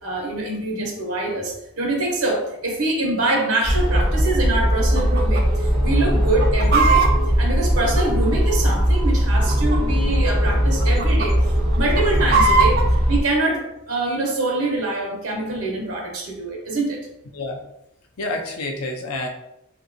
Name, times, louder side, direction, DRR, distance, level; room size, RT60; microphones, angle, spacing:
voice 1, 0.0-7.1 7.4-11.4 11.7-17.1, right 2 dB, 75° right, 0 dB, 0.9 m, -24 dB
sound 1, 3.6-13.2, equal, ahead, 0.8 m, -19 dB
Chicken rooster, 5.0-5.4 5.7-5.8 6.2-8.5 9.2-10.0 10.3-10.5 10.8-11.3 11.7-12.9, right 4 dB, 45° right, 0.4 m, -20 dB
voice 2, 18.2-19.3, left 2 dB, 90° left, 3 dB, 0.6 m, -28 dB
3.8 x 2.6 x 2.6 m, 0.82 s
head